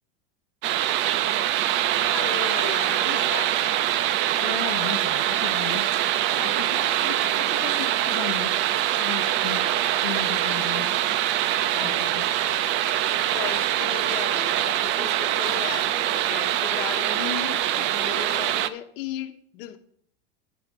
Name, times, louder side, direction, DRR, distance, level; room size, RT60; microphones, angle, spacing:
sound 1, 0.6-18.7, right 12 dB, 40° right, 0.6 m, -24 dB
voice 1, 2.1-3.8 6.4-7.2 7.5-7.6 11.6-12.2 13.3-19.8, left 11 dB, 70° left, 9 dB, 1.1 m, -36 dB
voice 2, 4.4-5.9 6.7-8.6 9.0-10.9 11.8-12.6, left 11 dB, 85° left, 3 dB, 0.9 m, -36 dB
10.5 x 5.4 x 6.1 m, 0.65 s
supercardioid pair, 145°, 29 cm